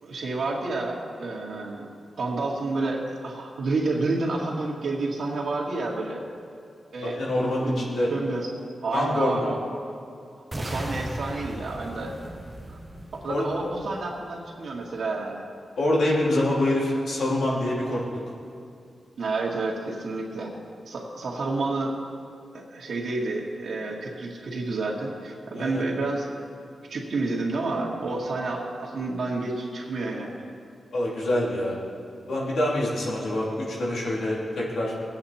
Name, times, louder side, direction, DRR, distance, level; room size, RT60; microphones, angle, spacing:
voice 1, 0.0-1.9 2.2-6.3 6.9-8.5 8.8-9.6 10.5-12.2 12.7-12.8 13.1-15.4 19.2-20.5 20.9-22.0 22.5-26.3 26.9-30.3, right 3 dB, 70° right, -3 dB, 2.0 m, -30 dB
voice 2, 7.0-8.1 8.9-9.5 13.3-13.4 15.8-18.0 25.6-25.9 30.9-31.7 32.3-34.9, left 1 dB, 85° left, -4 dB, 3.1 m, -25 dB
sound 1, 10.5-14.5, right 1 dB, 10° right, 0.9 m, -37 dB
19.5 x 8.7 x 4.3 m, 2.4 s
wide cardioid pair, 115°, 0 cm